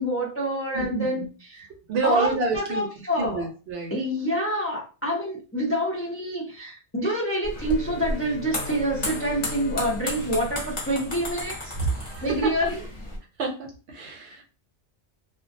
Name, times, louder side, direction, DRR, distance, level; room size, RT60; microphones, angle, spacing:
voice 1, 0.0-1.6 2.0-3.5 3.9-11.7 12.2-12.8, equal, 20° left, -3 dB, 0.3 m, -27 dB
voice 2, 0.7-1.3 1.9-2.9 3.2-3.9 11.7-12.7 13.4-14.4, right 4 dB, 70° right, 2 dB, 0.8 m, -28 dB
sound 1, 7.4-13.2, left 1 dB, 40° left, 0.8 m, -34 dB
Bowed string instrument, 7.5-11.6, left 2 dB, 85° left, 0.9 m, -41 dB
2.3 x 2.1 x 2.5 m, 0.34 s
omnidirectional pair, 1.2 m